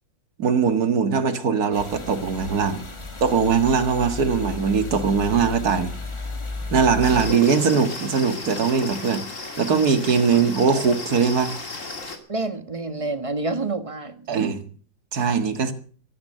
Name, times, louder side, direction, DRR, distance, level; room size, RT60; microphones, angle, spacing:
voice 1, 0.4-2.8 3.2-5.9 6.7-11.5 14.3-14.7 15.1-15.7, right 6 dB, 55° right, 9 dB, 2.2 m, -21 dB
sound 1, 1.7-7.3, left 2 dB, 15° left, 1.6 m, -34 dB
sound 2, 7.0-12.2, left 3 dB, 45° left, 2.9 m, -34 dB
voice 2, 12.3-14.3 15.3-15.5, right 3 dB, 20° right, 10 dB, 1.2 m, -28 dB
14.5 x 14.0 x 6.6 m, 0.42 s
omnidirectional pair, 2.0 m